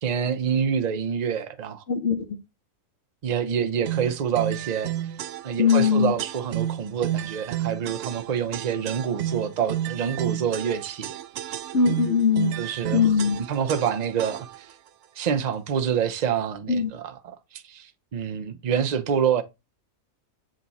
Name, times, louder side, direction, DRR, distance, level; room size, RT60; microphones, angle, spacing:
voice 1, 0.0-1.8 3.2-4.9 5.4-11.2 12.6-14.7 15.1-19.4, right 7 dB, 40° right, 0.7 m, -27 dB
sound 1, 3.8-14.7, right 12 dB, 70° right, 0.8 m, -32 dB
voice 2, 5.6-6.1 11.7-12.6 12.9-13.4 16.7-16.9, left 6 dB, 60° left, 1.3 m, -20 dB
7.5 x 3.6 x 4.1 m
omnidirectional pair, 1.4 m